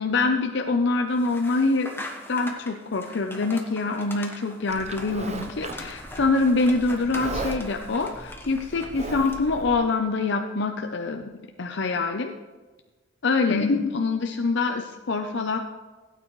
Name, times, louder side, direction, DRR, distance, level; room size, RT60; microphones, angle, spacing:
voice 1, 0.0-11.2 11.6-12.3 13.2-15.6, left 3 dB, 65° left, 4 dB, 0.7 m, -25 dB
sound 1, 1.2-9.6, left 1 dB, 10° left, 1.2 m, -42 dB
Livestock farm animals working animals, 4.7-9.7, right 2 dB, 35° right, 0.8 m, -37 dB
16.5 x 9.1 x 3.2 m, 1.2 s
head